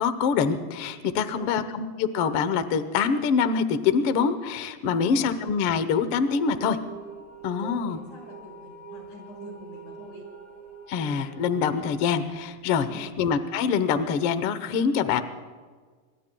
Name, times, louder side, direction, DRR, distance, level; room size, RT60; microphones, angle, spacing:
voice 1, 0.0-6.8 7.4-8.0 10.9-15.2, left 6 dB, 75° left, 11 dB, 1.3 m, -25 dB
voice 2, 1.1-1.5 4.8-5.3 7.4-10.2 12.8-13.1, left 1 dB, 55° left, -2 dB, 7.5 m, -46 dB
sound 1, 6.2-13.1, right 5 dB, 70° right, 4.3 m, -45 dB
26.5 x 23.5 x 2.3 m, 1.5 s
omnidirectional pair, 3.9 m